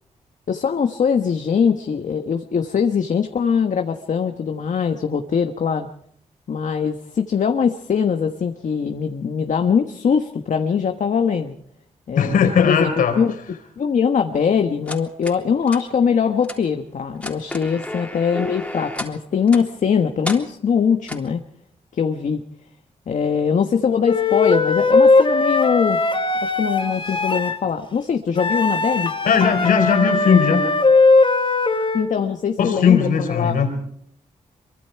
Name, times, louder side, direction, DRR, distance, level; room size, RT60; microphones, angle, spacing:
voice 1, 0.5-5.9 6.5-11.5 12.1-12.9 13.2-13.3 13.8-21.4 21.9-22.4 23.1-26.0 26.4-29.1 31.9-33.6, left 6 dB, 65° left, 6 dB, 1.4 m, -21 dB
voice 2, 12.1-13.1 29.2-30.7 32.6-33.7, left 7 dB, 85° left, 6 dB, 4.3 m, -17 dB
sound 1, 14.9-15.4 15.7-15.8 16.4-16.6 17.1-19.2 19.5-19.7 20.2-20.4 21.1-21.3, left 1 dB, 10° left, 3.5 m, -31 dB
Wind instrument woodwind instrument, 24.1-27.6 28.4-32.1, left 3 dB, 40° left, 3.4 m, -18 dB
24.0 x 23.5 x 4.7 m, 0.67 s
cardioid pair, 60°, 14 cm